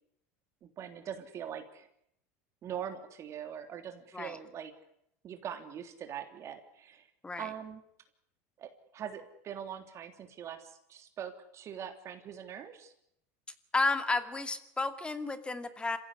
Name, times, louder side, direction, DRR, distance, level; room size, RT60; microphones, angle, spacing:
voice 1, 0.6-1.9 2.6-4.7 5.2-7.1 7.4-7.8 8.6-12.9, right 9 dB, 40° right, 6 dB, 3.4 m, -42 dB
voice 2, 13.7-16.0, left 3 dB, 15° left, 10 dB, 2.5 m, -32 dB
27.0 x 16.0 x 9.9 m, 0.75 s
supercardioid pair, 115°, 8 cm